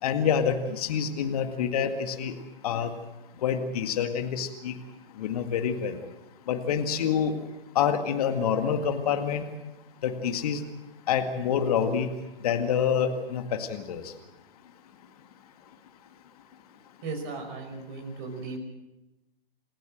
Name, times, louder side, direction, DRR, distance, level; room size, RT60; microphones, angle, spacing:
voice 1, 0.0-2.3 2.6-2.9 3.4-4.7 5.2-6.0 6.5-7.3 7.8-9.4 10.0-10.6 11.1-12.1 12.4-14.0, left 7 dB, 40° left, 7 dB, 2.0 m, -27 dB
voice 2, 17.0-18.6, right 3 dB, 30° right, 5 dB, 5.4 m, -36 dB
28.0 x 15.0 x 7.8 m, 1.0 s
figure-of-eight pair, 125°, 29 cm